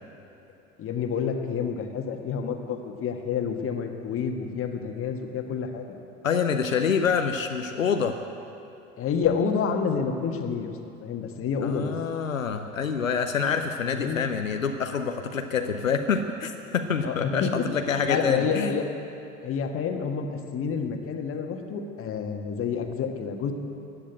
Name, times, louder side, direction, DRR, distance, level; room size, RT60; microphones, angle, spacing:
voice 1, 0.8-6.0 9.0-10.7 11.0-11.9 13.8-14.2 17.0-17.7 18.0-18.8 19.4-23.5, left 6 dB, 35° left, 4 dB, 1.6 m, -29 dB
voice 2, 6.2-8.2 11.6-18.7, left 6 dB, 80° left, 6 dB, 0.8 m, -26 dB
15.5 x 10.5 x 8.0 m, 2.8 s
figure-of-eight pair, 70°, 39 cm